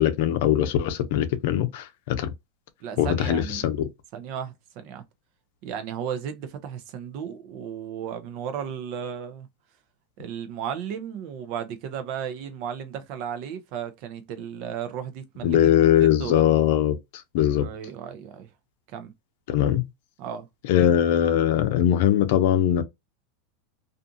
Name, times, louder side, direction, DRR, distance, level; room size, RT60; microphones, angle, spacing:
voice 1, 0.0-2.3 3.0-3.8 15.4-17.0 17.3-17.7 19.5-19.8 20.7-22.8, left 11 dB, 65° left, 0.5 m, -21 dB
voice 2, 2.8-3.6 4.1-5.0 5.6-9.5 10.2-15.7 16.0-16.4 17.6-18.5 18.9-19.1 20.2-20.5, right 8 dB, 55° right, 0.6 m, -34 dB
2.5 x 2.4 x 2.6 m
supercardioid pair, 120°, 0 cm